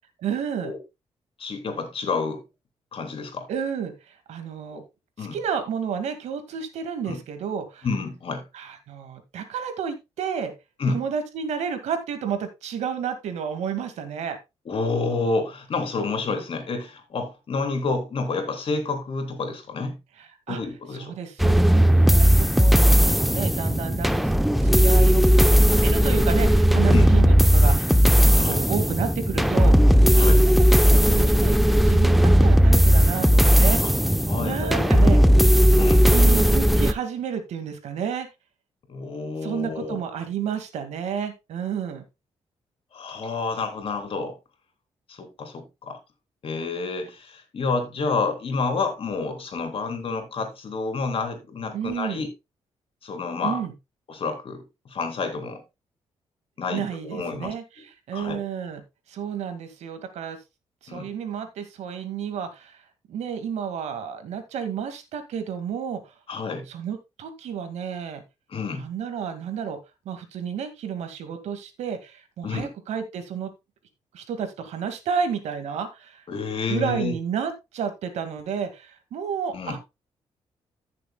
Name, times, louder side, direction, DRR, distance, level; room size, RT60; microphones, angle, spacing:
voice 1, 0.2-0.7 3.5-4.8 5.2-7.9 8.5-10.5 10.9-14.4 20.2-20.6 20.9-24.3 24.6-27.9 28.3-30.5 30.9-31.5 31.9-34.1 34.4-35.2 36.0-38.3 39.4-42.0 51.7-52.2 53.4-53.7 56.7-58.8 59.1-60.4 60.8-62.8 63.1-66.1 66.7-68.2 68.7-69.8 70.1-73.5 74.1-76.2 76.7-79.8, right 7 dB, 85° right, 2.0 m, -31 dB
voice 2, 1.4-2.4 2.9-3.5 4.7-4.8 5.2-5.4 7.1-7.2 7.8-8.4 10.8-11.0 14.6-20.0 20.5-21.1 22.3-22.4 26.9-27.1 28.4-28.6 30.1-30.4 33.8-33.9 34.3-34.9 35.8-36.1 38.9-40.0 42.9-44.4 45.1-46.0 46.4-52.3 53.0-53.6 54.1-55.6 56.6-57.5 58.1-58.4 60.9-61.1 66.3-66.7 68.5-68.9 72.4-72.7 76.3-77.1 79.5-79.8, left 4 dB, 55° left, 3.4 m, -29 dB
sound 1, 21.4-36.9, equal, ahead, 0.7 m, -17 dB
15.5 x 6.8 x 2.3 m
cardioid pair, 85°, 11 cm